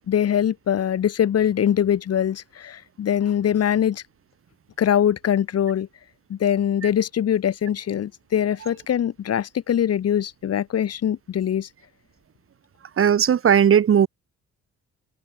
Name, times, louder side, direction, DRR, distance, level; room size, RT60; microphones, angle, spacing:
voice 1, 0.1-4.0 4.8-5.9 6.3-11.7, left 9 dB, 55° left, 1.5 m, -22 dB
voice 2, 13.0-14.1, right 8 dB, 45° right, 1.2 m, -17 dB
cardioid pair, 90°, 30 cm